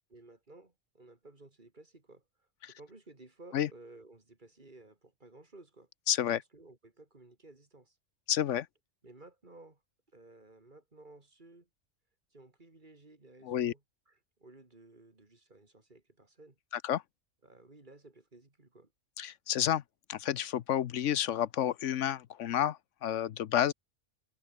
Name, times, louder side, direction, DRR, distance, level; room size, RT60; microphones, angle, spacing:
voice 1, 0.1-2.2 2.7-5.9 6.3-8.0 9.0-9.8 10.1-11.7 12.3-13.8 14.1-16.6 17.4-18.9, right 2 dB, 40° right, 2.9 m, -56 dB
voice 2, 6.1-6.4 8.3-8.7 13.4-13.7 16.8-17.0 19.2-19.8 20.1-23.7, left 10 dB, 75° left, 1.0 m, -30 dB
omnidirectional pair, 1.3 m